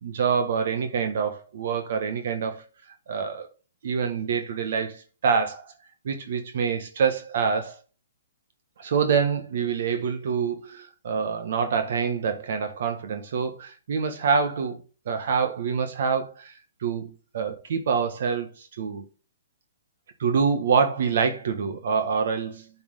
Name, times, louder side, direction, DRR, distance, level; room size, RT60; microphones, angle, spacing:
voice 1, 0.0-2.6 3.1-3.5 3.8-5.7 6.0-7.7 8.8-16.5 16.8-19.0 20.2-22.7, right 6 dB, 60° right, 1.5 m, -26 dB
8.7 x 4.4 x 3.7 m
hypercardioid pair, 150°, 0 cm